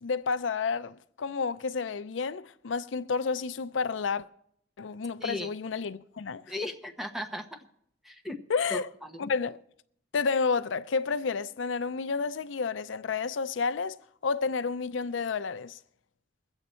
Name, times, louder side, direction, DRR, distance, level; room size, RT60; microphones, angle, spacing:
voice 1, 0.0-4.2 4.8-6.4 8.5-8.9 9.2-9.6 10.1-14.0 14.2-15.8, left 5 dB, 85° left, 0.5 m, -30 dB
voice 2, 5.2-5.5 6.5-7.4 8.0-8.4 8.7-9.3, left 1 dB, ahead, 0.9 m, -36 dB
21.5 x 8.1 x 4.3 m
head